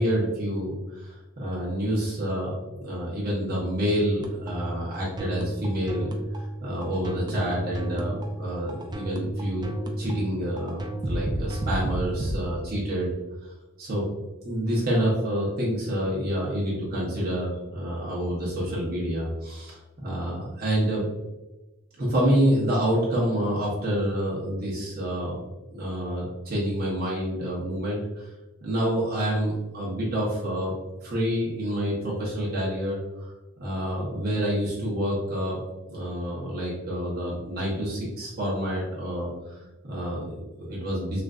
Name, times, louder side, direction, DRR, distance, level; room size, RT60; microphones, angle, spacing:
voice 1, 0.0-13.1 13.4-14.1 14.4-21.1 22.0-25.4 25.7-28.3 28.6-30.7 31.0-33.3 33.6-35.6 35.9-41.2, equal, 45° right, -6 dB, 0.7 m, -28 dB
sound 1, 4.2-12.4, right 1 dB, 20° right, 0.3 m, -32 dB
3.1 x 2.5 x 2.3 m, 1.1 s
head